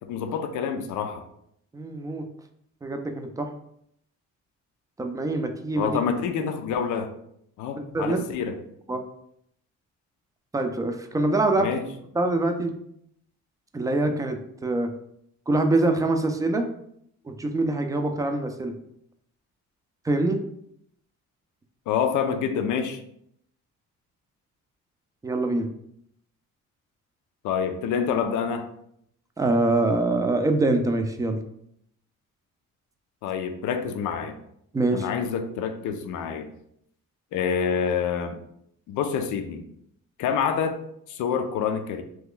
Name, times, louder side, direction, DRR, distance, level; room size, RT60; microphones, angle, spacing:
voice 1, 0.0-1.2 5.8-7.1 7.6-8.5 11.6-11.9 21.9-23.0 27.4-28.6 33.2-34.3 34.9-36.5 37.3-38.4 38.9-39.6 40.2-40.8 41.1-42.0, left 7 dB, 80° left, 7 dB, 0.5 m, -27 dB
voice 2, 1.7-2.3 2.8-3.5 5.0-5.9 7.9-8.2 8.9-9.0 10.5-11.7 12.1-12.7 13.7-14.9 15.5-16.7 17.2-18.7 20.0-20.4 25.2-25.7 29.4-31.4 34.7-35.1, right 2 dB, 10° right, 6 dB, 0.4 m, -24 dB
2.9 x 2.3 x 3.7 m, 0.72 s
cardioid pair, 90°, 30 cm